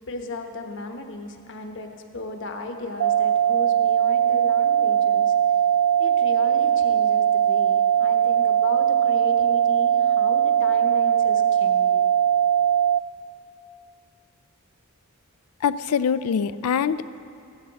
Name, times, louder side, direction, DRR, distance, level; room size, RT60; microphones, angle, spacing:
voice 1, 0.0-5.3 6.0-12.1, left 2 dB, 60° left, 4 dB, 1.0 m, -36 dB
sound 1, 3.0-13.0, right 9 dB, 75° right, 0.4 m, -20 dB
voice 2, 15.6-17.1, left 7 dB, 90° left, 15 dB, 0.4 m, -24 dB
15.5 x 12.5 x 4.1 m, 2.5 s
head